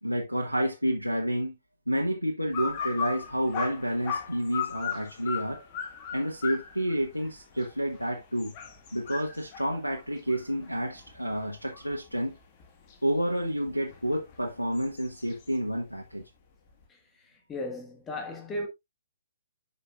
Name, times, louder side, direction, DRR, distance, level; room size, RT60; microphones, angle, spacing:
voice 1, 0.0-1.6 1.9-5.6 6.1-8.5 8.9-12.3 13.0-16.2, equal, 90° left, 1.3 m, -29 dB
sound 1, 2.5-12.1 12.6-15.6, left 6 dB, 30° left, 1.7 m, -38 dB
voice 2, 16.9-18.7, left 1 dB, 15° left, 1.6 m, -37 dB
9.8 x 5.8 x 2.5 m
figure-of-eight pair, 125°, 0 cm